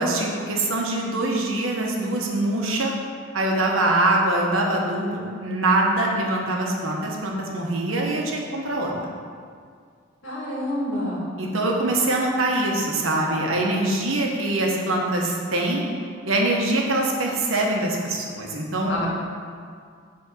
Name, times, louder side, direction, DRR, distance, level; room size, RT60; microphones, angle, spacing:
voice 1, 0.0-2.9 3.3-9.1 11.4-15.8 16.3-19.1, right 2 dB, 85° right, -1 dB, 1.3 m, -23 dB
voice 2, 10.2-11.3 18.9-19.1, left 1 dB, 70° left, -5 dB, 2.2 m, -28 dB
7.1 x 4.2 x 6.6 m, 2.1 s
head